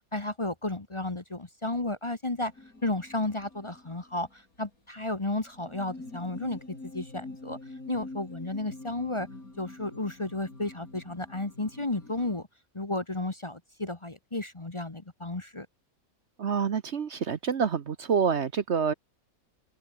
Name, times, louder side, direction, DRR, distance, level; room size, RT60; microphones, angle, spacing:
voice 1, 0.1-2.5 2.8-6.6 6.9-7.6 7.9-9.3 9.6-12.5 12.7-15.7, left 2 dB, 20° left, 1.3 m, -33 dB
sound 1, 2.5-4.4 4.6-4.7 5.4-12.4, left 2 dB, 80° left, 6.3 m, -46 dB
voice 2, 16.4-18.9, right 6 dB, 55° right, 1.2 m, -27 dB
open air
omnidirectional pair, 1.5 m